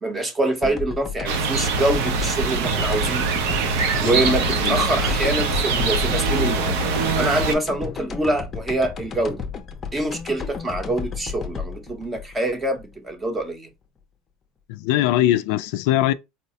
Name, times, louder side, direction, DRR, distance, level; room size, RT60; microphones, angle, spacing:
voice 1, 0.0-3.3 4.0-6.9 7.2-9.4 9.9-13.7, right 1 dB, 15° right, 0.7 m, -25 dB
sound 1, 0.6-13.4, left 5 dB, 25° left, 0.5 m, -33 dB
sound 2, 1.3-7.5, right 4 dB, 80° right, 0.6 m, -23 dB
voice 2, 4.0-4.3 4.6-4.8 14.7-16.1, left 13 dB, 70° left, 0.3 m, -21 dB
4.0 x 2.1 x 2.7 m
cardioid pair, 150°, 0 cm